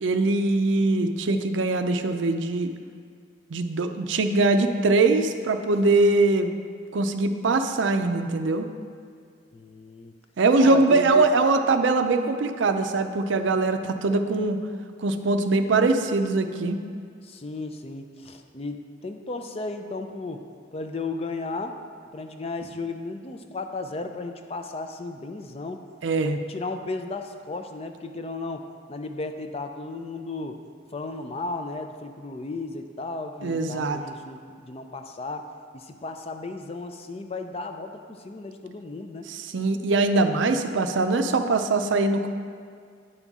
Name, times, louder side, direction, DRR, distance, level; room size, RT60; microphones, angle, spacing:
voice 1, 0.0-2.7 3.5-6.5 6.9-8.7 10.4-14.6 15.0-16.8 26.0-26.4 33.4-34.0 39.3-42.3, right 3 dB, 75° right, 7 dB, 0.5 m, -22 dB
voice 2, 9.5-10.1 10.6-11.3 17.2-20.4 20.7-21.8 22.1-25.9 26.3-30.6 30.9-39.3, left 3 dB, 30° left, 6 dB, 0.4 m, -35 dB
10.0 x 5.4 x 3.6 m, 2.2 s
head